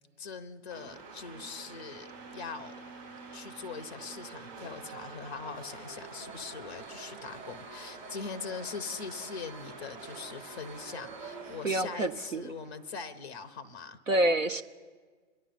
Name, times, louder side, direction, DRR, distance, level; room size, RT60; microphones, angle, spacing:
voice 1, 0.2-2.7 3.3-14.0, left 5 dB, 20° left, 10 dB, 0.4 m, -41 dB
sound 1, 0.7-13.0, right 4 dB, 40° right, 4.1 m, -46 dB
voice 2, 11.6-12.5 14.1-14.6, right 1 dB, 90° right, 7 dB, 0.9 m, -27 dB
27.5 x 11.0 x 2.5 m, 1.5 s
figure-of-eight pair, 125°, 37 cm